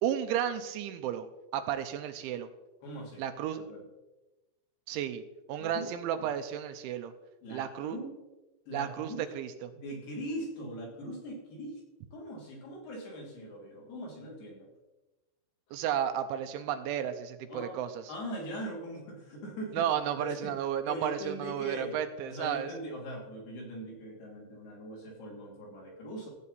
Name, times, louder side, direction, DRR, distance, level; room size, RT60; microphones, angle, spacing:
voice 1, 0.0-1.3 1.5-2.5 3.2-3.6 4.9-5.2 5.5-7.1 7.5-8.0 8.7-9.7 15.7-18.0 19.7-22.7, right 9 dB, 85° right, 9 dB, 3.0 m, -33 dB
voice 2, 2.8-3.2 3.6-3.8 5.6-6.0 7.4-8.2 8.7-9.2 9.7-11.8 12.1-14.7 17.4-17.8 18.1-19.9 20.2-22.0 22.3-26.3, equal, 60° left, -3 dB, 4.7 m, -41 dB
15.0 x 8.4 x 4.2 m, 1.1 s
omnidirectional pair, 5.5 m